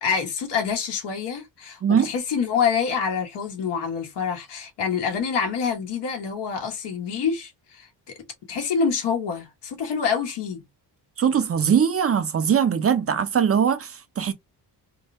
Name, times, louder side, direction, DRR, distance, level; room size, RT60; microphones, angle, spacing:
voice 1, 0.0-8.1 8.5-10.6, left 6 dB, 90° left, 1.3 m, -26 dB
voice 2, 1.8-2.1 11.2-14.3, right 7 dB, 35° right, 0.5 m, -21 dB
3.6 x 2.1 x 2.5 m
cardioid pair, 100°, 40 cm